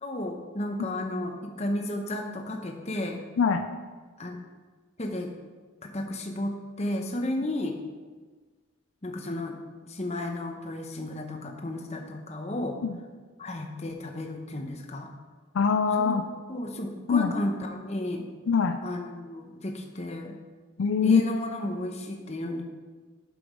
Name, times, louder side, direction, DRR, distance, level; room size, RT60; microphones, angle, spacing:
voice 1, 0.0-3.2 4.2-4.4 5.0-5.3 5.8-7.8 9.0-12.8 13.4-15.1 16.0-18.3 18.8-20.4 21.0-22.6, left 1 dB, 30° left, 4 dB, 0.9 m, -33 dB
voice 2, 3.4-3.7 12.8-13.0 15.5-16.2 17.1-17.3 18.5-18.8 20.8-21.2, left 6 dB, 70° left, 8 dB, 0.4 m, -23 dB
8.1 x 6.1 x 5.0 m, 1.4 s
head